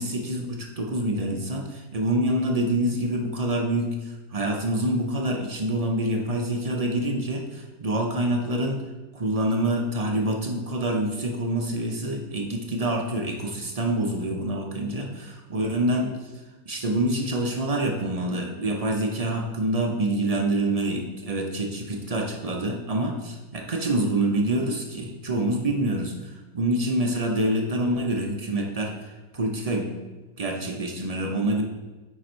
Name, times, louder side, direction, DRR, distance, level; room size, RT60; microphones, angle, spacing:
voice 1, 0.0-8.8 9.1-16.1 16.7-29.9 30.4-31.6, right 1 dB, 50° right, 1 dB, 0.4 m, -26 dB
9.3 x 3.4 x 4.4 m, 1.2 s
omnidirectional pair, 1.6 m